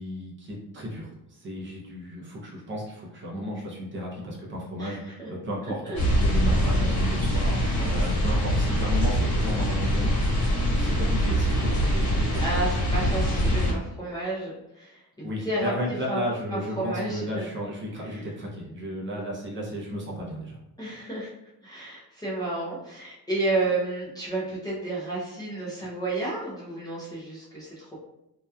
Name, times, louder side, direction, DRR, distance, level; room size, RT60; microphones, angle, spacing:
voice 1, 0.0-10.1 10.8-12.5 15.2-20.6, equal, 30° right, -4 dB, 0.6 m, -34 dB
voice 2, 4.8-5.3 5.8-6.0 7.6-7.9 12.4-15.7 16.1-16.2 16.5-17.5 18.1-18.2 20.8-21.3 21.6-28.0, right 2 dB, 10° left, -9 dB, 0.5 m, -31 dB
sound 1, 5.9-13.7, equal, 65° left, 1.2 m, -24 dB
2.8 x 2.2 x 2.3 m, 0.88 s
cardioid pair, 155°, 38 cm